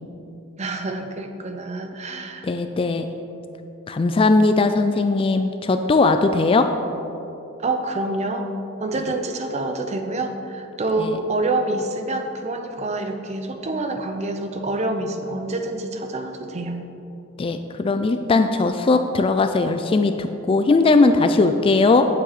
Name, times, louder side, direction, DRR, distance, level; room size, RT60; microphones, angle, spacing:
voice 1, 0.6-2.5 7.6-8.5 8.8-16.8, right 2 dB, 30° right, 6 dB, 0.6 m, -27 dB
voice 2, 2.4-3.1 3.9-6.7 11.0-11.2 17.4-22.1, left 3 dB, 25° left, 8 dB, 0.3 m, -19 dB
9.0 x 7.8 x 4.1 m, 2.9 s
head